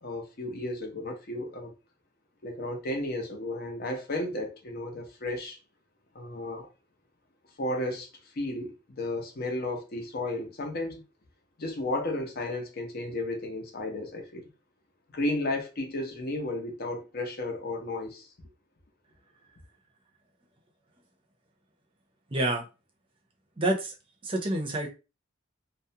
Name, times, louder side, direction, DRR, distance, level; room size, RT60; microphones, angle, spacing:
voice 1, 0.0-1.7 2.4-5.6 6.1-6.7 7.6-8.1 8.3-11.0 11.6-14.5 15.1-18.3, left 1 dB, 50° left, 0.7 m, -33 dB
voice 2, 22.3-22.6 23.6-23.9 24.2-24.9, right 1 dB, 25° right, 0.6 m, -27 dB
2.4 x 2.1 x 2.7 m
head